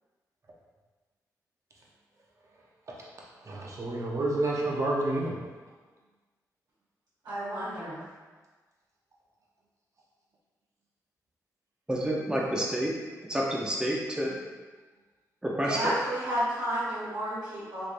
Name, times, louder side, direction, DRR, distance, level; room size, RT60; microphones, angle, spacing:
voice 1, 3.4-5.3, right 2 dB, 50° right, -3 dB, 0.8 m, -29 dB
voice 2, 7.2-8.0 15.6-17.9, right 1 dB, 75° right, -10 dB, 1.3 m, -31 dB
voice 3, 11.9-12.9 13.3-14.4 15.4-15.9, equal, 10° right, -3 dB, 0.8 m, -29 dB
3.1 x 3.1 x 2.6 m, 1.3 s
cardioid pair, 60°, 7 cm